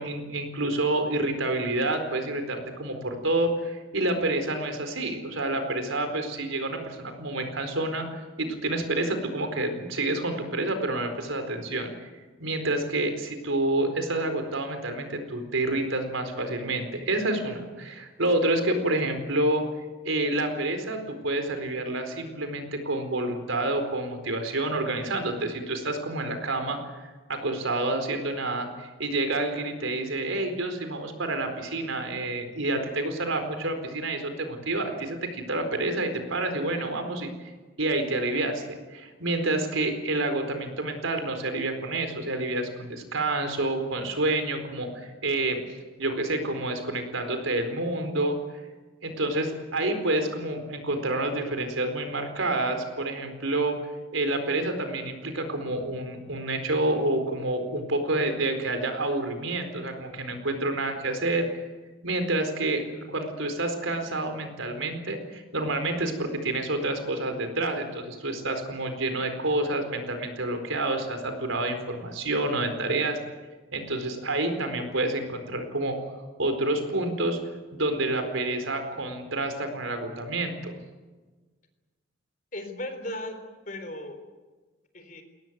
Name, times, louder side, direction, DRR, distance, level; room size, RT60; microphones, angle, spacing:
voice 1, 0.0-8.0 8.4-11.9 12.4-19.6 20.0-37.3 37.8-38.6 38.9-45.6 46.0-48.4 49.0-53.7 54.1-61.5 62.0-73.2 73.7-76.0 76.4-77.4 77.7-80.8, right 2 dB, 85° right, 7 dB, 4.3 m, -28 dB
voice 2, 82.5-84.2 84.9-85.2, left 1 dB, 40° left, 7 dB, 3.8 m, -36 dB
22.0 x 18.5 x 9.4 m, 1.3 s
head